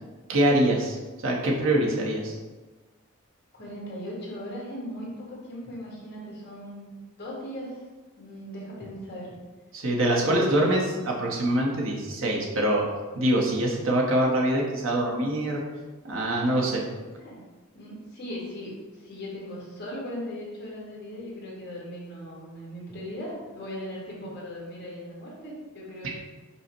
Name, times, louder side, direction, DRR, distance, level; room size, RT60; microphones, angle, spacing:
voice 1, 0.3-2.4 9.7-12.9 13.1-15.6 16.0-16.8, right 1 dB, 70° right, -1 dB, 0.8 m, -24 dB
voice 2, 3.5-7.8 8.2-9.3 10.1-10.9 17.1-17.4 17.7-26.2, equal, 50° left, -5 dB, 1.5 m, -38 dB
5.4 x 2.1 x 4.3 m, 1.3 s
head